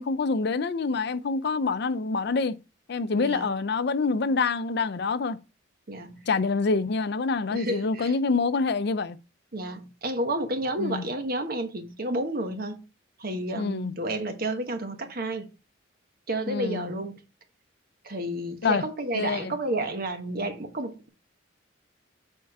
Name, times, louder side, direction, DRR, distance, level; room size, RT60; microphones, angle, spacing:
voice 1, 0.0-2.6 2.9-5.4 6.3-9.2 10.8-11.0 13.6-13.9 16.5-16.9 18.6-18.8 19.2-19.5, left 4 dB, 65° left, 0.5 m, -26 dB
voice 2, 3.1-3.5 5.9-6.3 7.5-8.2 9.5-12.8 13.2-15.5 16.3-17.2 18.0-21.1, right 1 dB, 55° right, 1.2 m, -31 dB
7.1 x 4.6 x 4.7 m
head